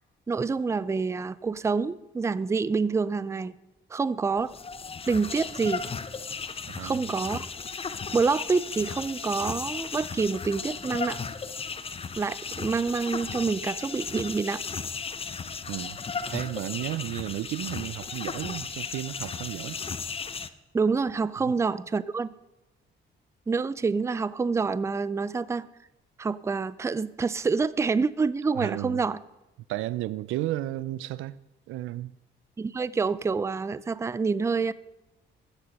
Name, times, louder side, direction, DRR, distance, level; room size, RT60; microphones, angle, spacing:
voice 1, 0.3-3.5 3.9-4.5 5.1-5.8 6.8-7.5 8.1-11.2 12.2-14.6 20.7-22.3 23.5-25.7 26.2-29.2 32.6-34.7, right 4 dB, 15° right, 0.4 m, -27 dB
sound 1, 4.4-20.5, left 5 dB, 30° left, 0.6 m, -35 dB
voice 2, 6.7-7.1 15.7-16.0 16.3-19.8 21.4-21.5 28.6-29.0 29.7-31.4 31.7-32.1, right 15 dB, 85° right, 0.4 m, -33 dB
15.0 x 6.8 x 5.3 m
cardioid pair, 90°, 20 cm